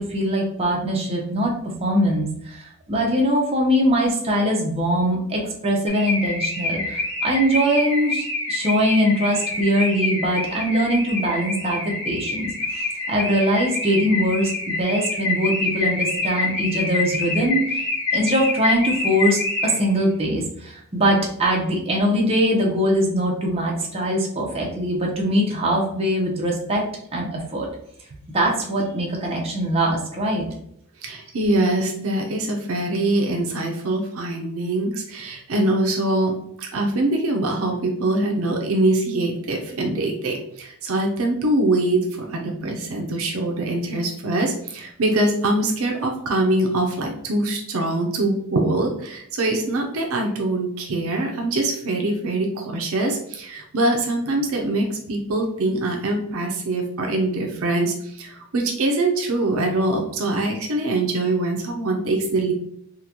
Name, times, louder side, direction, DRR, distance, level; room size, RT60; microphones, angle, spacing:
voice 1, 0.0-1.5 1.8-17.9 18.1-26.8 27.1-27.7 28.3-30.5, equal, 25° right, -2 dB, 0.7 m, -22 dB
Car / Alarm, 5.9-20.0, left 3 dB, 50° left, 1.1 m, -27 dB
voice 2, 31.0-62.5, right 2 dB, 65° right, 1 dB, 0.5 m, -23 dB
3.7 x 2.2 x 2.9 m, 0.71 s
head